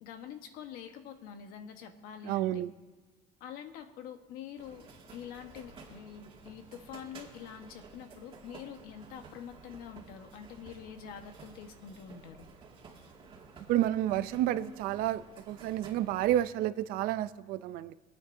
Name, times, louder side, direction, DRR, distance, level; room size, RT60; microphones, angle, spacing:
voice 1, 0.0-2.6 3.4-4.9 5.1-12.5, left 8 dB, 85° left, 6 dB, 1.3 m, -46 dB
voice 2, 2.2-2.7 13.7-15.2 15.5-17.9, right 13 dB, 80° right, 14 dB, 0.5 m, -30 dB
sound 1, 4.6-16.4, right 4 dB, 35° right, 2.2 m, -53 dB
26.5 x 9.1 x 2.7 m, 1.4 s
cardioid pair, 135°, 15 cm